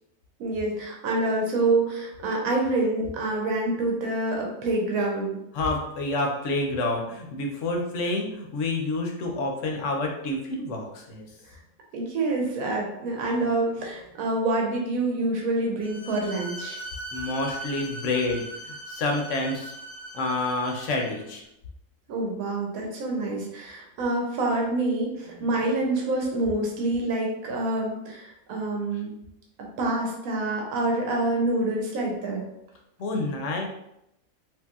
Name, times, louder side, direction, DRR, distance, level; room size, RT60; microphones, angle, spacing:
voice 1, 0.4-5.4 11.9-16.8 22.1-29.2 29.8-32.4, right 2 dB, 80° right, -1 dB, 1.1 m, -27 dB
voice 2, 5.5-11.3 17.1-19.7 20.1-21.4 25.3-25.4 33.0-33.7, left 2 dB, 70° left, 2 dB, 0.8 m, -28 dB
Bowed string instrument, 15.8-21.3, right 1 dB, 45° right, 0.9 m, -39 dB
3.0 x 2.7 x 2.3 m, 0.82 s
omnidirectional pair, 1.5 m